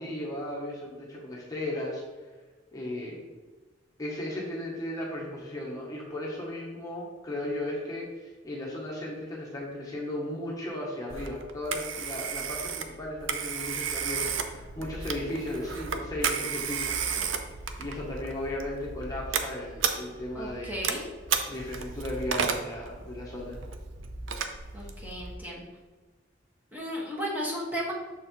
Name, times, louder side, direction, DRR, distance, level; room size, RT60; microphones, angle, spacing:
voice 1, 0.0-2.0 2.7-3.2 4.0-17.2 17.8-20.7 21.5-23.6 24.8-24.9, left 1 dB, 20° left, -4 dB, 1.1 m, -36 dB
Telephone, 11.1-25.3, right 6 dB, 85° right, 0.6 m, -33 dB
voice 2, 20.3-21.1 24.7-25.6 26.7-27.9, equal, 10° right, -4 dB, 1.4 m, -34 dB
6.6 x 4.3 x 4.5 m, 1.3 s
head